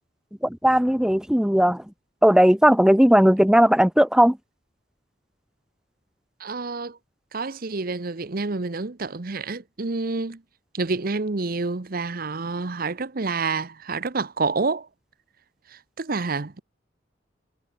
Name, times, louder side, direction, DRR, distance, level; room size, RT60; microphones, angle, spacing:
voice 1, 0.4-1.8 2.2-4.4, equal, 5° right, 0.8 m, -17 dB
voice 2, 6.4-7.0 7.3-10.4 10.7-14.9 15.7-16.6, right 3 dB, 50° right, 0.9 m, -28 dB
head